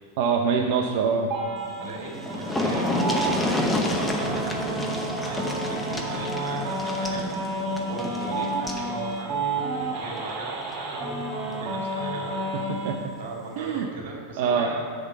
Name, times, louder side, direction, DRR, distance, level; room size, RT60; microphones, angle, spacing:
voice 1, 0.2-1.3 3.3-3.4 12.5-13.1 13.6-13.9 14.4-14.7, right 6 dB, 55° right, 2 dB, 0.6 m, -25 dB
sound 1, 1.3-12.9, right 2 dB, 40° right, 1.9 m, -30 dB
sound 2, 1.8-1.9 2.1-8.9 10.2-10.3 10.7-10.8, left 1 dB, 10° left, 0.9 m, -29 dB
voice 2, 1.8-7.3 7.8-12.6 13.2-14.9, right 3 dB, 85° right, -1 dB, 2.3 m, -39 dB
10.0 x 4.0 x 7.1 m, 2.1 s
supercardioid pair, 145°, 0 cm